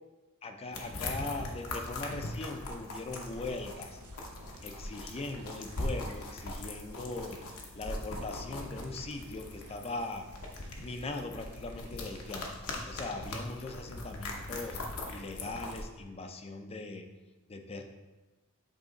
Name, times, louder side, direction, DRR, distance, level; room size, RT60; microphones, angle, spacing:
voice 1, 0.4-4.0 4.6-7.4 7.7-10.3 10.6-12.5 12.9-17.1 17.5-17.8, left 2 dB, 30° left, 5 dB, 0.5 m, -40 dB
sound 1, 0.7-15.8, left 2 dB, 75° left, 0.9 m, -41 dB
sound 2, 3.1-12.5, right 4 dB, 85° right, 0.5 m, -57 dB
8.1 x 3.0 x 3.8 m, 1.2 s
head